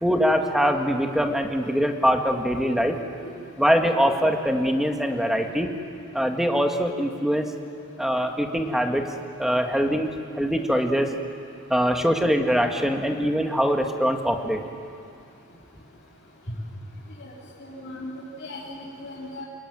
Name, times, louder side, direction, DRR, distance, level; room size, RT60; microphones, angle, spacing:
voice 1, 0.0-3.0 3.6-5.7 6.1-7.5 8.0-9.0 9.4-10.1 10.3-11.1 11.7-14.6, equal, ahead, 3 dB, 1.8 m, -23 dB
voice 2, 17.6-19.4, left 1 dB, 45° left, -8 dB, 3.9 m, -38 dB
28.5 x 21.0 x 9.4 m, 2.5 s
head